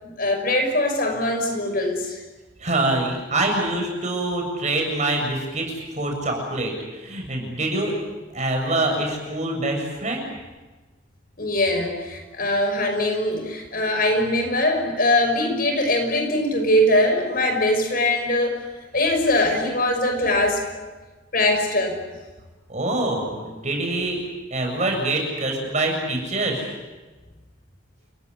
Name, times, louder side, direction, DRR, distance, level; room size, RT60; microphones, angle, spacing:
voice 1, 0.0-2.2 11.4-18.6 18.9-20.8 21.3-22.0, left 1 dB, 50° left, 4 dB, 5.9 m, -22 dB
voice 2, 2.6-5.7 6.0-7.9 8.3-10.2 22.7-24.2 24.5-26.7, right 2 dB, 40° right, 2 dB, 7.6 m, -25 dB
29.5 x 17.5 x 9.9 m, 1.2 s
head